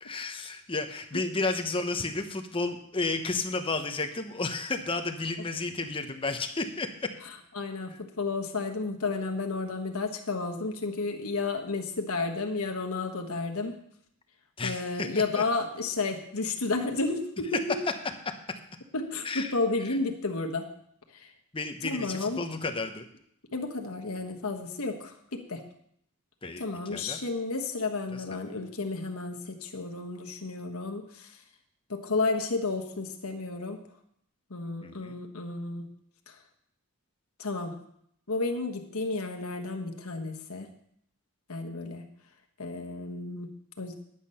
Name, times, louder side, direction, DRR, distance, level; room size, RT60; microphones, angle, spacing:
voice 1, 0.0-7.1 7.9-8.0 14.6-15.4 19.2-19.5 21.5-23.1 26.4-26.6 26.9-27.2 28.1-28.4 34.8-35.2, left 3 dB, 25° left, 6 dB, 0.9 m, -32 dB
voice 2, 7.5-13.7 14.6-17.6 18.9-20.7 21.1-21.3 21.8-22.4 23.5-25.6 26.6-31.3 31.9-33.8 34.5-35.8 36.3-36.4 37.4-37.8 38.3-40.7 41.5-42.0 42.6-43.9, left 3 dB, 70° left, 3 dB, 1.3 m, -32 dB
10.5 x 8.3 x 5.6 m, 0.69 s
head